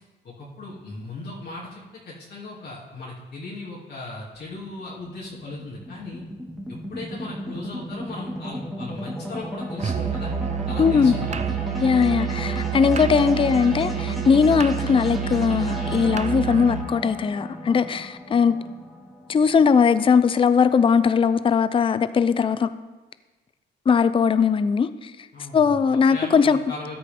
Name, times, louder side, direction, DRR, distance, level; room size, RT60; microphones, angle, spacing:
voice 1, 0.2-6.2 6.7-10.3 10.7-11.5 25.3-27.0, left 2 dB, 55° left, 2.7 m, -37 dB
sound 1, 4.3-20.7, equal, ahead, 2.2 m, -34 dB
Musical instrument, 9.8-16.9, right 9 dB, 35° right, 0.5 m, -28 dB
voice 2, 10.8-11.1 11.8-18.5 19.3-22.7 23.9-25.1 25.5-26.6, left 6 dB, 25° left, 0.5 m, -19 dB
13.5 x 10.0 x 3.6 m
cardioid pair, 90°, 20 cm